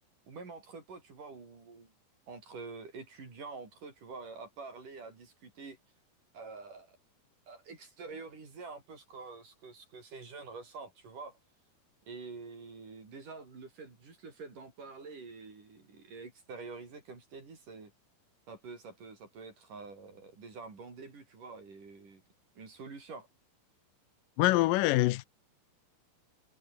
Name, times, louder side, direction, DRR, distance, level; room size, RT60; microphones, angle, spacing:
voice 1, 0.3-1.9 2.3-5.8 6.3-7.0 7.5-11.4 12.0-17.9 18.5-22.2 22.6-23.3, right 4 dB, 50° right, 6.9 m, -47 dB
voice 2, 24.4-25.3, left 18 dB, 85° left, 1.9 m, -25 dB
omnidirectional pair, 4.8 m